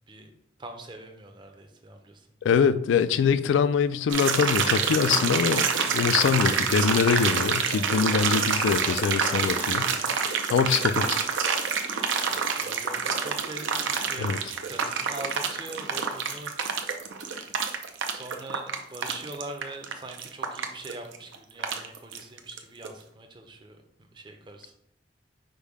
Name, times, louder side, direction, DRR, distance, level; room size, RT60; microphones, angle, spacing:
voice 1, 0.6-2.3 9.5-10.1 12.3-14.3 14.6-16.5 18.1-23.8 24.1-24.7, right 2 dB, 25° right, 5 dB, 0.5 m, -42 dB
voice 2, 2.4-9.9 10.5-11.2 14.2-14.4, left 6 dB, 85° left, 13 dB, 0.3 m, -24 dB
sound 1, 4.1-22.6 22.8-22.9, right 6 dB, 90° right, 0.5 m, -27 dB
5.2 x 2.2 x 4.7 m, 0.72 s
head